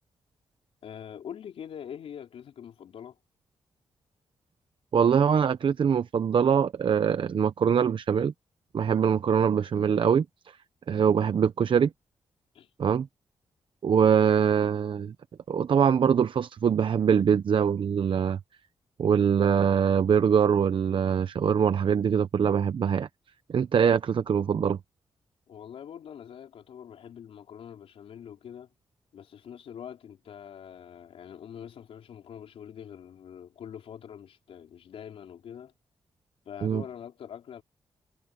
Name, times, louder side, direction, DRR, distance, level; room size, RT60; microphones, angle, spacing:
voice 1, 0.8-3.2 12.5-12.7 25.5-28.7 29.1-35.7 36.4-37.6, left 8 dB, 85° left, 4.3 m, -44 dB
voice 2, 4.9-8.3 8.7-10.2 10.9-11.9 12.8-13.1 13.8-15.1 15.5-18.4 19.0-23.1 23.5-24.8 36.6-36.8, right 7 dB, 60° right, 0.8 m, -23 dB
cardioid pair, 75°, 10 cm